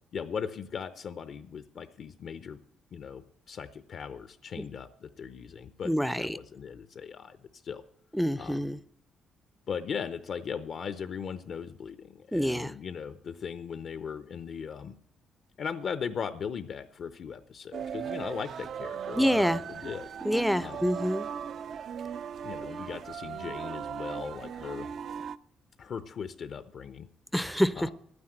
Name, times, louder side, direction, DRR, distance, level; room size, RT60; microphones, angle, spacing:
voice 1, 0.1-2.6 2.9-7.4 7.6-7.8 8.4-8.7 9.7-15.0 15.6-19.4 19.7-20.1 20.6-20.9 22.4-24.9 25.8-27.1 27.8-27.9, left 7 dB, 60° left, 11 dB, 0.7 m, -38 dB
voice 2, 5.8-6.4 8.1-8.8 12.3-12.7 19.1-19.6 20.2-21.3 27.3-27.9, equal, ahead, 16 dB, 0.5 m, -27 dB
sound 1, 17.7-25.4, right 7 dB, 60° right, 0.5 m, -38 dB
11.0 x 9.7 x 7.8 m, 0.69 s
cardioid pair, 90°, 0 cm